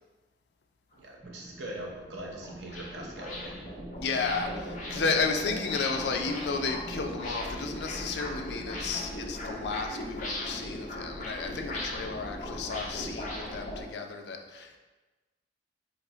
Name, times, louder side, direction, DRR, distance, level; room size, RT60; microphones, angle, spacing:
sound 1, 0.9-1.0 1.4-13.8, left 1 dB, 45° left, 0.9 m, -38 dB
voice 1, 0.9-3.6, right 1 dB, 80° right, -1 dB, 0.8 m, -41 dB
sound 2, 1.2-9.0, right 2 dB, 25° right, 0.4 m, -47 dB
voice 2, 4.0-14.8, left 4 dB, 70° left, 4 dB, 0.4 m, -33 dB
5.0 x 2.0 x 3.8 m, 1.2 s
head